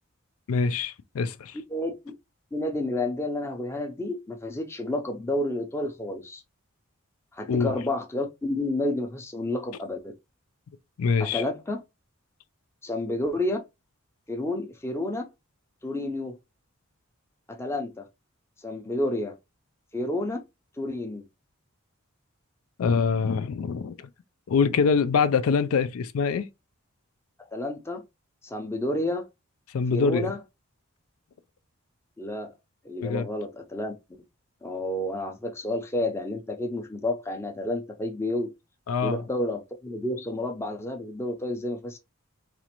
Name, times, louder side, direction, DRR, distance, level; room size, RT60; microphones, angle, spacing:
voice 1, 0.5-1.6 7.5-7.7 11.0-11.4 22.8-24.1 24.5-26.5 29.7-30.3 33.0-33.3 38.9-39.2, left 5 dB, 85° left, 0.4 m, -24 dB
voice 2, 1.7-2.2 2.5-6.4 7.3-10.1 11.2-11.8 12.8-13.6 14.3-15.3 15.8-16.4 17.5-18.1 18.6-19.4 19.9-20.4 20.8-21.2 27.5-28.0 28.4-29.3 29.9-30.4 32.2-32.5 32.8-33.9 34.6-38.5 39.0-42.0, left 1 dB, 10° left, 0.5 m, -30 dB
4.1 x 2.5 x 2.9 m
head